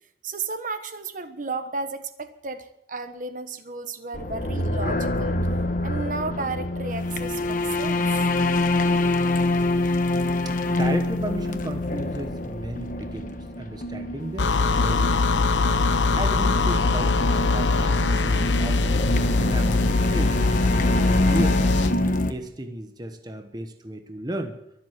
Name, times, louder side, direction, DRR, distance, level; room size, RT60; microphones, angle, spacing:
voice 1, 0.2-5.4 5.8-8.1, right 3 dB, 45° right, 9 dB, 1.2 m, -33 dB
sound 1, 4.1-22.3, left 1 dB, 45° left, 1.2 m, -26 dB
voice 2, 10.4-15.4 16.2-19.0 19.4-21.6 22.3-24.6, right 1 dB, 20° right, 6 dB, 1.1 m, -34 dB
sound 2, 14.4-21.9, left 3 dB, 75° left, 0.9 m, -22 dB
23.0 x 7.8 x 7.5 m, 0.80 s
head